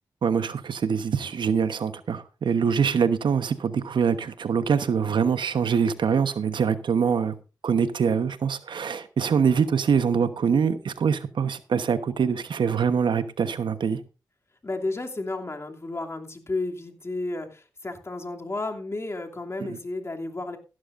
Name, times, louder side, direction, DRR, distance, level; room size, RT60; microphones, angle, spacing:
voice 1, 0.2-7.3 7.6-14.0 19.6-19.8, right 6 dB, 70° right, 1.1 m, -24 dB
voice 2, 14.6-20.6, left 2 dB, 35° left, 2.8 m, -32 dB
15.5 x 12.5 x 2.6 m
cardioid pair, 55°, 8 cm